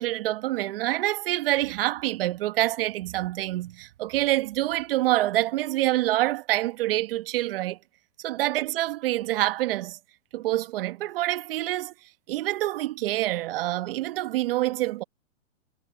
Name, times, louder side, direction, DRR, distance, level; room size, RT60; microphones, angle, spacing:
voice 1, 0.0-7.8 8.2-10.0 10.3-11.9 12.3-15.0, right 16 dB, 45° right, 1.4 m, -26 dB
hypercardioid pair, 145°, 39 cm